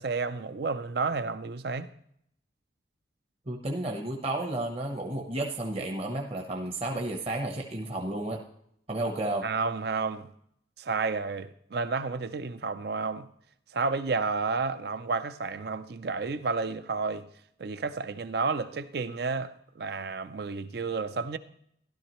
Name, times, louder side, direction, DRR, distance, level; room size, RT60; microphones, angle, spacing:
voice 1, 0.0-1.9 9.4-10.3 10.8-13.3 13.7-17.3 17.6-19.5 19.8-21.4, right 4 dB, 55° right, 0.5 m, -31 dB
voice 2, 3.5-8.4 8.9-9.4, right 1 dB, 30° right, 0.9 m, -32 dB
13.0 x 12.0 x 3.0 m
head